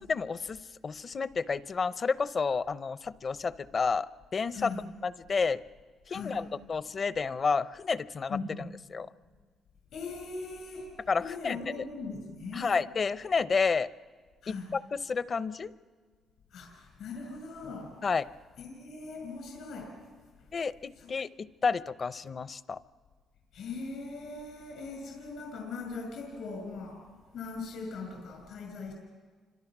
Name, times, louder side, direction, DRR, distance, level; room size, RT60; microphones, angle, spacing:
voice 1, 0.1-4.7 5.0-5.6 6.1-8.4 8.9-9.1 11.1-11.6 12.5-13.9 14.5-15.7 18.0-18.2 20.5-22.8, left 5 dB, 40° left, 15 dB, 0.7 m, -30 dB
voice 2, 4.5-4.8 6.1-6.4 8.3-8.7 9.9-12.7 14.4-14.7 16.5-18.1 18.6-20.1 21.0-21.1 23.5-28.9, left 4 dB, 75° left, 2 dB, 6.1 m, -40 dB
30.0 x 26.0 x 6.1 m, 1.5 s
cardioid pair, 90°, 0 cm